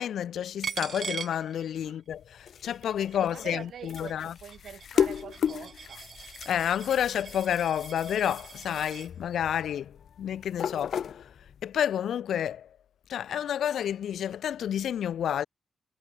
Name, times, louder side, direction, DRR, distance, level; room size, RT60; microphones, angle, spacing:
voice 1, 0.0-4.3 6.5-11.3 11.6-12.7 13.1-15.4, left 9 dB, 80° left, 0.5 m, -30 dB
Coin (dropping), 0.6-2.1 2.5-9.1, right 6 dB, 45° right, 3.2 m, -42 dB
sound 1, 2.1-11.7, left 8 dB, 60° left, 2.7 m, -35 dB
voice 2, 3.2-6.0, right 9 dB, 70° right, 2.4 m, -44 dB
wide cardioid pair, 140°, 0 cm